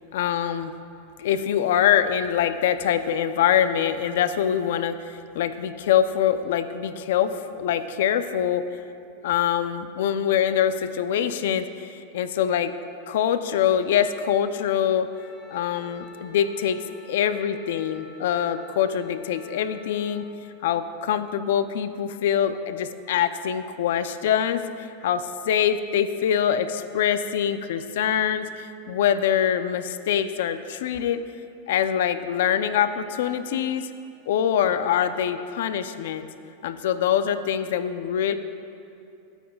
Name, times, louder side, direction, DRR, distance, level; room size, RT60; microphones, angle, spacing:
voice 1, 0.1-0.7 1.2-8.6 9.2-12.7 13.1-15.1 15.5-20.3 20.6-31.2 31.7-33.9 34.3-36.3 36.6-38.3, left 9 dB, 75° left, 11 dB, 0.6 m, -24 dB
Wind instrument woodwind instrument, 15.1-20.3, left 5 dB, 20° left, 1.7 m, -47 dB
21.5 x 9.0 x 2.4 m, 2.6 s
supercardioid pair, 135°, 0 cm